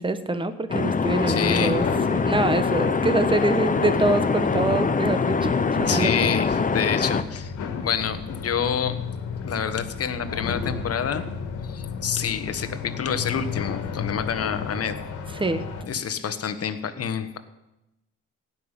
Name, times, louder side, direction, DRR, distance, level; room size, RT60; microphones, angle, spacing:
voice 1, 0.0-1.8 2.1-6.1 15.4-15.6, right 2 dB, 15° right, 10 dB, 1.3 m, -25 dB
sound 1, 0.7-7.2, left 5 dB, 25° left, 0.8 m, -23 dB
sound 2, 1.0-15.8, left 6 dB, 85° left, 1.8 m, -34 dB
voice 2, 1.3-1.8 2.1-2.2 5.9-9.0 9.4-11.2 11.6-15.0 15.8-17.4, left 7 dB, 50° left, 10 dB, 1.3 m, -28 dB
16.5 x 5.8 x 10.0 m, 0.95 s
cardioid pair, 90°, 30 cm